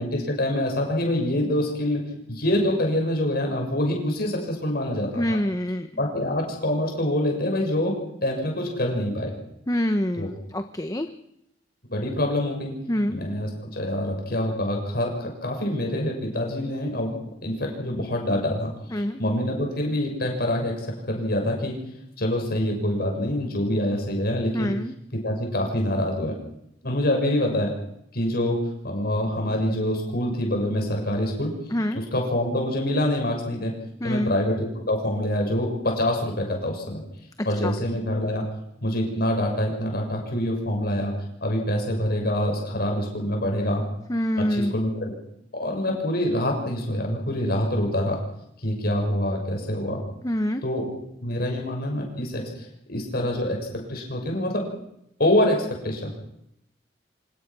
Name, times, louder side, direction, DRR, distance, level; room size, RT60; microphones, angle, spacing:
voice 1, 0.0-5.2 6.0-8.0 8.2-9.3 10.2-10.3 11.9-12.7 13.1-17.1 17.4-21.8 22.2-24.7 25.1-26.3 26.8-27.7 28.1-31.6 31.9-33.7 34.0-37.0 37.4-38.4 38.8-41.1 41.4-43.8 44.4-45.1 45.6-48.2 48.6-50.0 50.6-50.9 51.2-52.4 52.9-53.6 53.9-54.6 55.2-56.1, left 1 dB, 60° left, 1 dB, 6.7 m, -25 dB
voice 2, 5.1-5.9 9.7-11.1 12.9-13.2 18.9-19.2 24.5-24.9 31.7-32.0 34.0-34.3 37.4-37.8 44.1-44.7 50.2-50.6, left 1 dB, 20° left, 8 dB, 0.9 m, -26 dB
26.0 x 18.5 x 6.2 m, 0.77 s
head